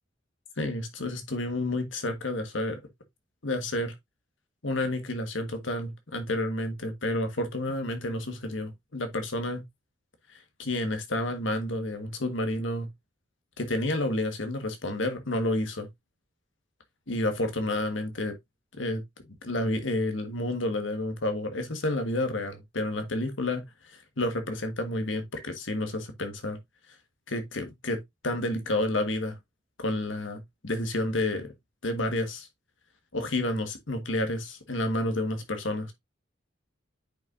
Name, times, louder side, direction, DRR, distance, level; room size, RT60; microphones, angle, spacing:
voice 1, 0.6-2.8 3.4-3.9 4.6-9.6 10.3-12.9 13.6-15.9 17.1-18.4 18.8-19.0 19.4-26.6 27.3-28.0 28.2-29.4 29.8-31.5 31.8-32.5 33.1-35.9, left 1 dB, 75° left, 1.5 m, -30 dB
9.1 x 5.5 x 2.6 m
head